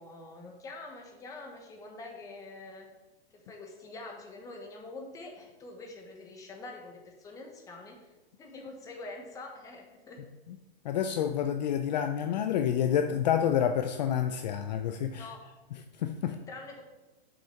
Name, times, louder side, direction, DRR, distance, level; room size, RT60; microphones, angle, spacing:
voice 1, 0.0-2.9 3.3-8.1 8.4-10.2 15.2-15.4 16.2-16.8, left 2 dB, 10° left, 1 dB, 1.1 m, -45 dB
voice 2, 10.8-15.3 16.0-16.4, left 9 dB, 45° left, 7 dB, 0.5 m, -28 dB
7.3 x 6.5 x 5.7 m, 1.1 s
hypercardioid pair, 165°, 30 cm